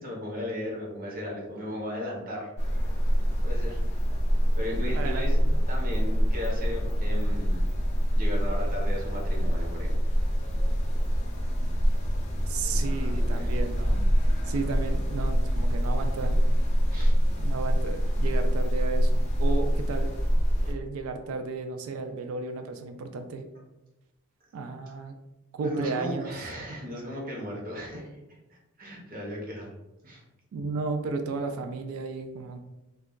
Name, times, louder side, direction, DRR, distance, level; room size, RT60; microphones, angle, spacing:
voice 1, 0.0-2.8 3.4-3.8 4.5-5.4 5.7-7.7 8.1-10.0 12.6-13.5 16.9-17.1 25.6-28.1 28.8-29.7 30.0-30.2, equal, 40° right, -2 dB, 0.8 m, -36 dB
sound 1, 2.6-20.7, equal, 35° left, 0.5 m, -25 dB
voice 2, 4.9-5.6 12.5-14.0 14.4-16.4 17.4-20.1 20.6-23.4 24.5-25.2 25.5-26.5 30.5-32.6, right 4 dB, 80° right, 7 dB, 0.3 m, -34 dB
2.3 x 2.2 x 3.7 m, 0.98 s
head